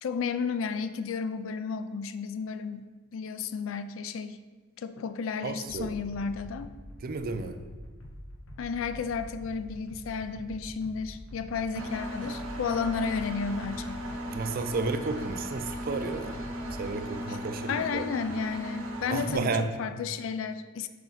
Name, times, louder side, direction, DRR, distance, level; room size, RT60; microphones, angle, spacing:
voice 1, 0.0-4.4 4.8-6.7 8.6-14.0 17.3-17.4 17.7-20.9, left 5 dB, 70° left, 11 dB, 0.3 m, -33 dB
voice 2, 5.4-5.9 7.0-7.6 14.3-16.4 16.8-18.1 19.1-19.7, right 3 dB, 45° right, 7 dB, 0.4 m, -32 dB
sound 1, 5.7-16.9, equal, 90° left, 0.9 m, -45 dB
Engine, 11.7-19.4, equal, 75° right, 0.8 m, -37 dB
5.8 x 4.9 x 3.9 m, 1.3 s
head